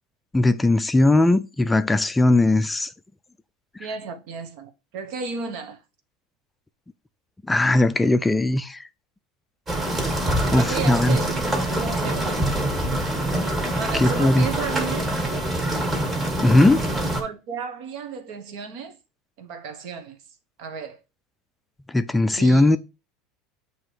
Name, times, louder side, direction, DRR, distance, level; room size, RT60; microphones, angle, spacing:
voice 1, 0.3-2.9 7.5-8.8 10.5-11.2 13.9-14.5 16.4-16.8 21.9-22.8, left 2 dB, 10° left, 0.3 m, -18 dB
voice 2, 3.8-5.8 10.5-12.5 13.8-15.1 17.2-19.0 19.4-20.2 20.6-21.0 22.3-22.8, right 5 dB, 65° right, 1.0 m, -33 dB
sound 1, 9.7-17.2, right 1 dB, 20° right, 1.6 m, -25 dB
7.4 x 2.9 x 4.7 m
supercardioid pair, 120°, 0 cm